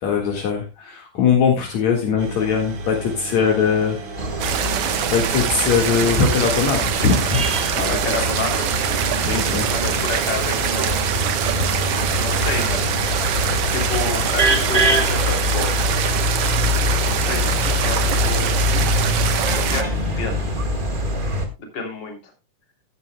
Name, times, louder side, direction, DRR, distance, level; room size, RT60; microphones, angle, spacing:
voice 1, 0.0-4.0 5.1-7.5 7.8-8.0 9.2-9.7, left 6 dB, 65° left, 1 dB, 3.0 m, -21 dB
sound 1, 2.2-20.0, right 1 dB, 85° right, 3.9 m, -35 dB
sound 2, 4.2-21.5, equal, 30° right, 1.0 m, -24 dB
sound 3, 4.4-19.8, right 9 dB, 60° right, 1.8 m, -24 dB
voice 2, 7.9-8.7 9.7-11.0 12.1-12.9 13.7-15.9 16.9-18.6 19.7-20.5 21.6-22.2, left 3 dB, 35° left, 3 dB, 3.4 m, -29 dB
15.0 x 11.0 x 2.2 m, 0.25 s
omnidirectional pair, 3.5 m